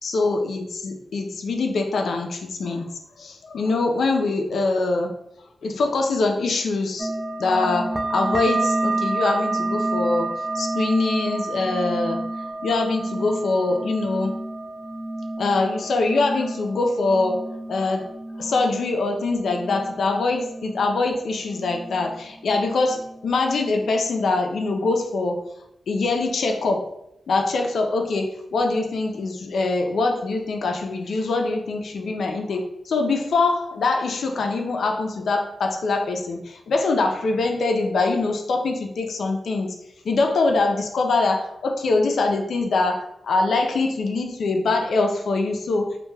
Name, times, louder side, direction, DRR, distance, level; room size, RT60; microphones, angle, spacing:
voice 1, 0.0-2.9 3.2-5.1 5.6-7.1 7.4-12.2 12.6-14.4 15.4-17.4 17.7-18.1 18.4-25.4 25.9-26.8 27.3-39.7 40.0-46.0, left 3 dB, 80° left, 3 dB, 0.3 m, -23 dB
sound 1, 7.0-22.2 22.4-23.2 23.5-24.2 24.6-25.0, right 2 dB, 30° right, 0.3 m, -29 dB
2.1 x 2.1 x 3.2 m, 0.82 s
cardioid pair, 60°, 0 cm